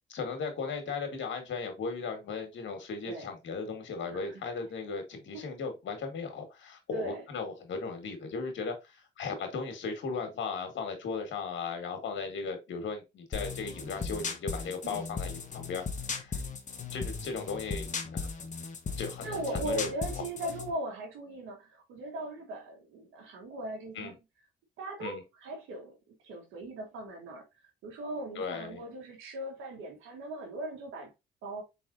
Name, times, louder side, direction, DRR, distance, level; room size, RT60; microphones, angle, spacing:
voice 1, 0.1-15.8 16.1-16.4 16.9-18.3 19.0-19.9 24.0-24.2 25.0-25.2 28.4-28.8, left 4 dB, 70° left, 1.8 m, -37 dB
voice 2, 4.1-4.4 5.3-5.5 6.9-7.2 14.8-15.1 19.2-24.2 24.8-27.4 27.8-31.1 31.4-31.6, right 1 dB, 90° right, 1.6 m, -39 dB
sound 1, 13.3-20.7, left 5 dB, 40° left, 1.1 m, -37 dB
4.6 x 4.1 x 2.7 m
cardioid pair, 90°, 20 cm